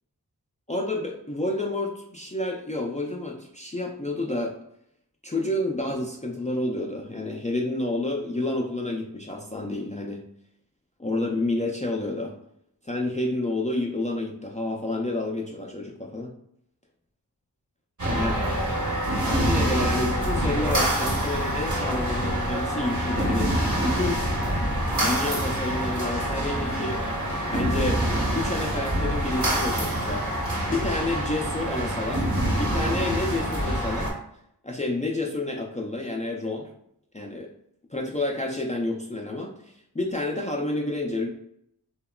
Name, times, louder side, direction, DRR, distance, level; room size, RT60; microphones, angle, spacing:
voice 1, 0.7-4.5 5.2-10.2 11.0-12.3 12.8-16.3 18.1-18.4 19.2-23.5 23.8-24.2 25.0-27.0 27.5-28.0 28.3-30.3 30.7-32.2 32.6-34.1 34.6-36.7 37.1-37.5 37.9-41.3, left 2 dB, 20° left, 0 dB, 0.3 m, -29 dB
sound 1, 18.0-34.1, right 1 dB, 50° right, 0.8 m, -26 dB
2.9 x 2.2 x 2.2 m, 0.72 s
wide cardioid pair, 55°, 40 cm